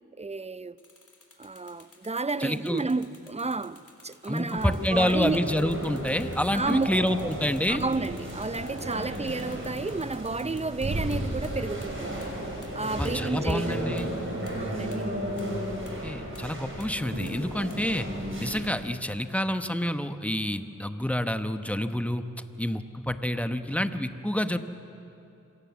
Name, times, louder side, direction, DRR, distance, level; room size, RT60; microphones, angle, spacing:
voice 1, 0.2-0.8 1.4-5.4 6.5-6.9 7.7-12.3 12.7-14.1 14.5-15.1, right 3 dB, 20° right, 0.6 m, -31 dB
sound 1, 0.8-11.2 11.4-11.5 11.8-11.9 12.2-12.3 12.6-12.7 13.0-13.1 13.5-13.6 14.0-14.1 14.5-14.6 14.9-15.0 15.4-15.5 15.9-16.0 16.3-16.4 16.8-16.9 17.3-17.4 17.7-17.8, left 3 dB, 75° left, 3.5 m, -53 dB
voice 2, 2.4-2.8 4.3-7.8 13.0-14.1 16.0-18.1 18.4-22.2 22.6-24.6, left 1 dB, 5° left, 1.1 m, -28 dB
sound 2, 4.6-18.7, right 1 dB, 45° right, 5.5 m, -34 dB
26.0 x 17.0 x 7.2 m
cardioid pair, 45°, 30 cm